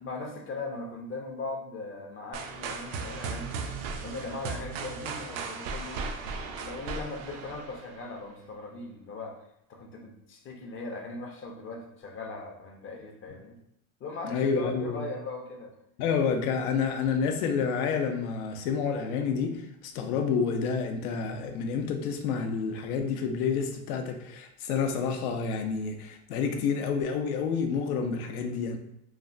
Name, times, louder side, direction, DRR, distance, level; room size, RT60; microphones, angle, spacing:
voice 1, 0.0-3.6 4.0-6.1 6.3-13.6 14.0-15.7, left 3 dB, 30° left, 2 dB, 0.5 m, -39 dB
sound 1, 2.3-8.2, right 4 dB, 70° right, 0.5 m, -37 dB
voice 2, 14.3-15.0 16.0-28.8, left 6 dB, 85° left, 5 dB, 0.6 m, -29 dB
3.2 x 2.1 x 2.5 m, 0.78 s
supercardioid pair, 105°, 42 cm